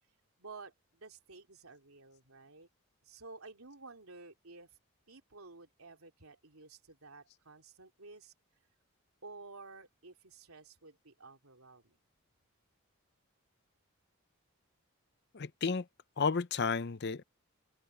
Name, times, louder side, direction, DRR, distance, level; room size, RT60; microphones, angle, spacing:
voice 1, 0.4-2.7 3.0-4.7 5.1-8.3 9.2-12.0, right 3 dB, 80° right, 3.4 m, -52 dB
voice 2, 15.3-15.8 16.2-17.2, left 5 dB, 50° left, 0.6 m, -32 dB
head